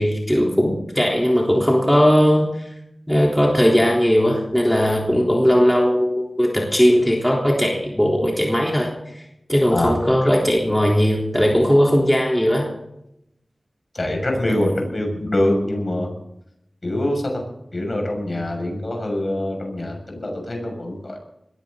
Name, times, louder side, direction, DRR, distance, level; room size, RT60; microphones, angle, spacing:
voice 1, 0.0-2.7 3.1-8.9 9.5-12.7, equal, 5° left, -2 dB, 3.7 m, -18 dB
voice 2, 13.9-16.1 16.8-17.4 17.7-21.2, left 1 dB, 45° left, 2 dB, 6.6 m, -24 dB
21.0 x 15.5 x 4.0 m, 0.82 s
wide cardioid pair, 60°, 0 cm